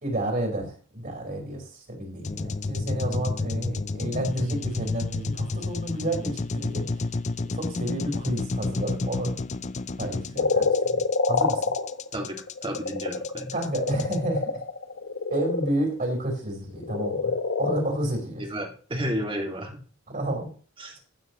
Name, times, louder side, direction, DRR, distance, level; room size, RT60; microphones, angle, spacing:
voice 1, 0.0-6.9 7.5-9.3 10.0-11.6 13.5-14.5 15.3-17.3 17.6-18.5 20.1-20.5, right 1 dB, 45° right, 0 dB, 4.7 m, -30 dB
sound 1, 2.2-14.2, left 3 dB, 35° left, 0.5 m, -30 dB
sound 2, 10.4-15.8 16.7-18.1, left 4 dB, 75° left, 1.1 m, -27 dB
voice 2, 12.1-13.5 18.4-19.8 20.8-21.0, equal, 25° right, 2 dB, 2.5 m, -32 dB
15.0 x 9.2 x 3.2 m, 0.40 s
head